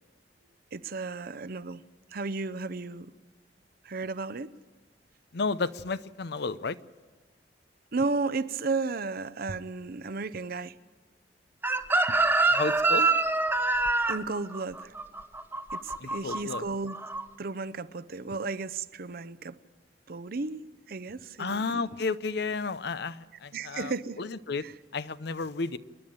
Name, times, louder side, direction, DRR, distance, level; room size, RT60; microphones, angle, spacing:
voice 1, 0.7-1.8 2.1-3.1 3.8-4.5 7.9-10.8 12.1-12.2 14.1-14.9 15.7-17.0 17.4-19.6 20.1-21.9 23.5-24.2 24.6-24.7, right 3 dB, 55° right, 0.7 m, -34 dB
voice 2, 5.3-6.8 12.5-13.1 16.0-16.6 21.4-24.6 24.9-25.8, left 4 dB, 65° left, 0.7 m, -32 dB
Chicken rooster, 11.6-16.6 16.9-17.2, right 3 dB, 10° right, 1.0 m, -25 dB
28.0 x 11.0 x 8.8 m
head